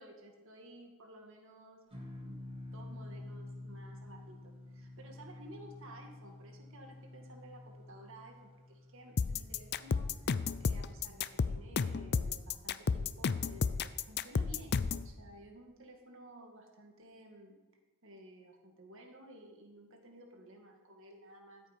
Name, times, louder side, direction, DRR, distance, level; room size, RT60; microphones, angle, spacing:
voice 1, 0.0-2.4 2.6-10.3 10.6-17.6 18.0-21.8, right 1 dB, 60° right, 3 dB, 1.9 m, -54 dB
sound 1, 1.9-12.4, left 2 dB, 25° right, 2.4 m, -50 dB
sound 2, 9.2-15.1, left 5 dB, 50° left, 0.4 m, -32 dB
13.5 x 8.2 x 5.1 m, 1.2 s
head